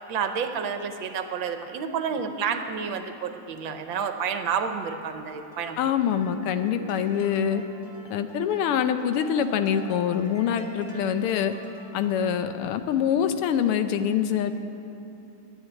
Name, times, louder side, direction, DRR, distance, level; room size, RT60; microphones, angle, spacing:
voice 1, 0.1-5.8, right 6 dB, 70° right, 7 dB, 1.4 m, -30 dB
sound 1, 5.1-12.4, right 1 dB, 25° left, 1.7 m, -45 dB
voice 2, 5.8-7.6 8.1-11.5 11.9-14.5, left 8 dB, 90° left, 9 dB, 1.6 m, -25 dB
10.5 x 9.9 x 9.2 m, 2.9 s
omnidirectional pair, 2.4 m